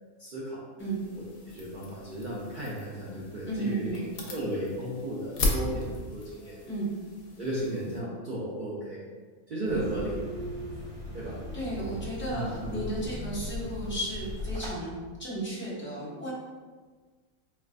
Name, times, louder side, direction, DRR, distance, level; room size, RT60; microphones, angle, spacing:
voice 1, 0.2-0.6 1.1-4.0 4.3-6.6 7.3-9.0 9.5-10.2 11.1-11.4 12.3-12.7, right 1 dB, 55° right, -7 dB, 0.5 m, -34 dB
sound 1, 0.8-8.0, left 2 dB, 85° left, 1.2 m, -36 dB
voice 2, 3.4-4.1 6.6-6.9 11.5-14.9 15.2-16.3, right 1 dB, 10° left, -7 dB, 0.6 m, -34 dB
sound 2, 9.6-14.7, equal, 35° left, 1.4 m, -38 dB
4.4 x 2.5 x 2.4 m, 1.4 s
omnidirectional pair, 1.5 m